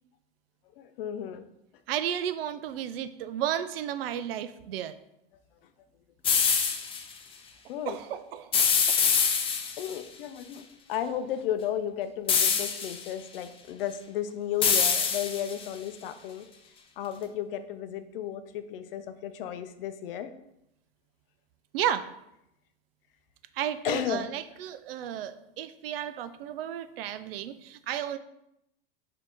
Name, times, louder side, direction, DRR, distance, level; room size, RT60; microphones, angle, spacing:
voice 1, 0.8-1.5 7.7-8.0 9.8-16.5 17.0-20.3 23.8-24.3, left 10 dB, 70° left, 10 dB, 0.6 m, -34 dB
voice 2, 1.9-4.9 7.9-8.5 8.9-9.0 21.7-22.1 23.6-28.2, right 10 dB, 75° right, 12 dB, 0.5 m, -33 dB
sound 1, 6.2-7.0 8.5-10.0 12.3-13.1 14.6-15.7, left 6 dB, 20° left, 0.4 m, -25 dB
4.2 x 2.8 x 4.4 m, 0.82 s
hypercardioid pair, 105°, 29 cm